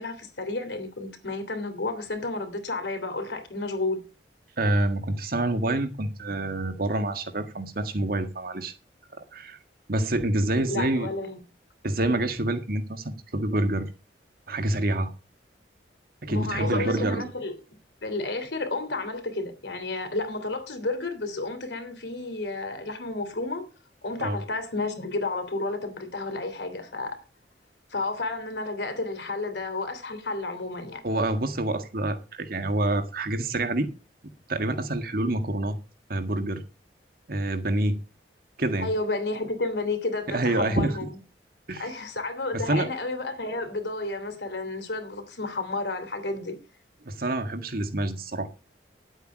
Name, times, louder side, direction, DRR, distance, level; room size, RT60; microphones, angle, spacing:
voice 1, 0.0-4.0 10.7-11.4 16.3-17.5 18.0-23.6 24.0-27.1 27.9-31.0 38.8-41.2 41.8-46.6, left 2 dB, 80° left, 3.1 m, -31 dB
voice 2, 4.6-8.7 9.3-9.6 9.9-11.1 11.8-13.9 14.5-15.1 16.2-17.3 24.2-24.4 31.0-33.9 34.5-35.8 36.1-36.6 37.3-38.0 38.6-38.9 40.3-41.1 41.7-41.9 42.5-42.9 47.0-48.5, right 1 dB, 55° right, 1.7 m, -27 dB
11.0 x 8.2 x 6.2 m
head